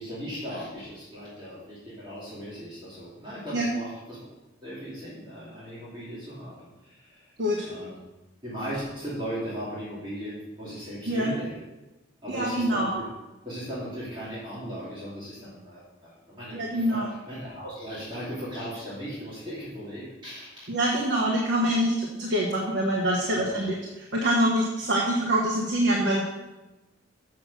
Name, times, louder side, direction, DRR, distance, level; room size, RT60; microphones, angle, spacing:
voice 1, 0.0-4.3 4.6-7.3 7.6-8.0 8.4-11.5 12.2-13.1 13.4-20.7 23.3-23.6, equal, 25° right, -10 dB, 2.7 m, -37 dB
voice 2, 7.4-7.7 11.1-11.3 12.3-13.0 16.5-17.1 20.7-26.2, right 1 dB, 60° right, -3 dB, 1.4 m, -25 dB
7.3 x 6.3 x 6.6 m, 1.1 s
head